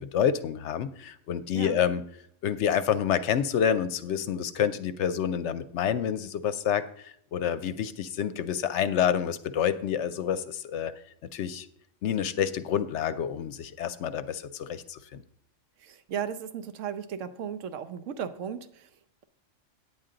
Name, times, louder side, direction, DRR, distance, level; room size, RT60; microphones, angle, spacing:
voice 1, 0.0-2.0 2.4-10.9 11.3-11.7 12.0-15.2, left 8 dB, 70° left, 12 dB, 0.8 m, -28 dB
voice 2, 15.8-19.2, right 8 dB, 75° right, 9 dB, 1.1 m, -36 dB
9.4 x 8.9 x 3.8 m, 0.70 s
omnidirectional pair, 1.3 m